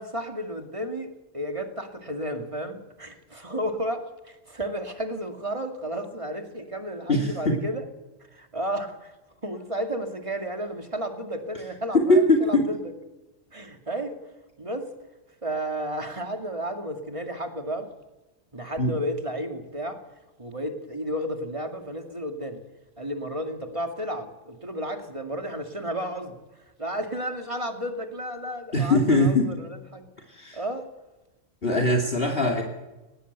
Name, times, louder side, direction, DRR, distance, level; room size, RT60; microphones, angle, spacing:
voice 1, 0.0-7.8 8.3-9.1 9.4-12.8 13.5-14.2 14.6-14.9 15.4-17.9 18.5-20.0 20.4-22.6 23.0-26.4 26.8-30.0 30.5-30.9 31.6-31.9 32.4-32.6, equal, 25° right, 4 dB, 2.4 m, -32 dB
voice 2, 7.1-7.6 11.9-12.6 18.8-18.9 28.7-29.5 30.3-30.6 31.6-32.6, left 1 dB, 50° left, 3 dB, 2.8 m, -21 dB
19.5 x 18.0 x 8.1 m, 1.1 s
omnidirectional pair, 1.3 m